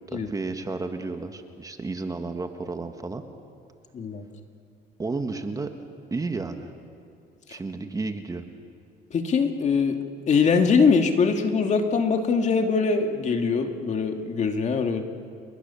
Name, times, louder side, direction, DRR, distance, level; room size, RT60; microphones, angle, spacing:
voice 1, 0.1-3.2 5.0-5.7 6.1-6.7 7.5-8.4, right 3 dB, 20° right, 6 dB, 1.6 m, -32 dB
voice 2, 9.1-10.0 10.3-15.0, left 5 dB, 45° left, 5 dB, 2.1 m, -22 dB
29.5 x 21.5 x 7.1 m, 2.4 s
cardioid pair, 110°, 17 cm